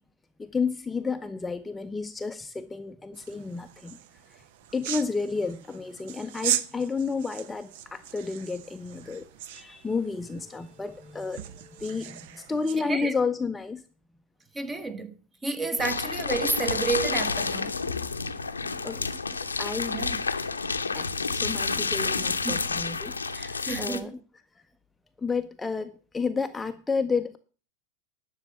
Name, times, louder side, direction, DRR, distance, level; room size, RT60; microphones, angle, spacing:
voice 1, 0.4-4.0 4.3-4.4 4.7-13.8 18.8-19.1 19.6-20.0 20.9-24.1 25.2-27.4, left 4 dB, 10° left, 0.6 m, -31 dB
sound 1, 3.1-12.8, right 11 dB, 60° right, 0.8 m, -38 dB
voice 2, 12.8-13.1 14.5-15.2 15.4-17.8 19.9-20.2 22.4-22.7 23.3-24.2, right 4 dB, 15° right, 1.3 m, -31 dB
sound 2, 15.8-24.0, left 4 dB, 85° left, 0.8 m, -29 dB
11.5 x 6.4 x 6.9 m
figure-of-eight pair, 90°, 0 cm